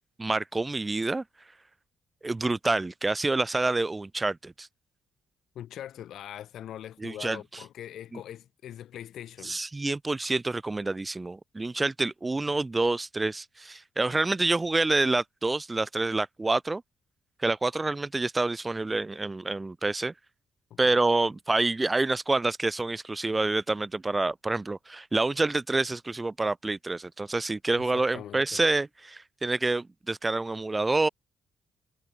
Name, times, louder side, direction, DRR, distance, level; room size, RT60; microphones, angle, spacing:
voice 1, 0.2-1.2 2.2-4.7 7.0-7.4 9.4-16.8 17.4-20.1 20.8-31.1, right 2 dB, 20° right, 1.4 m, -27 dB
voice 2, 5.6-9.6 20.7-21.0 27.8-28.6, left 11 dB, 75° left, 7.1 m, -42 dB
cardioid pair, 90°, 0 cm